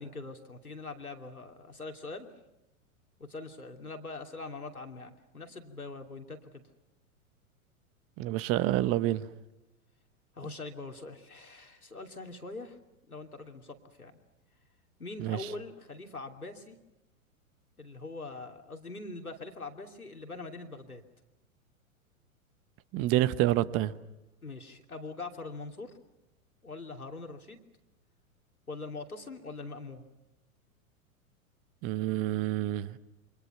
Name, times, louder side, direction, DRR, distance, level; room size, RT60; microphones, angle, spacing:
voice 1, 0.0-2.3 3.2-6.6 10.3-12.8 13.1-14.2 15.0-16.8 17.8-21.0 24.4-25.9 26.6-27.6 28.7-30.0, left 3 dB, 90° left, 3.1 m, -43 dB
voice 2, 8.2-9.3 15.2-15.4 22.9-23.9 31.8-33.0, right 14 dB, 30° right, 1.1 m, -28 dB
28.5 x 25.5 x 5.8 m
figure-of-eight pair, 100°, 42 cm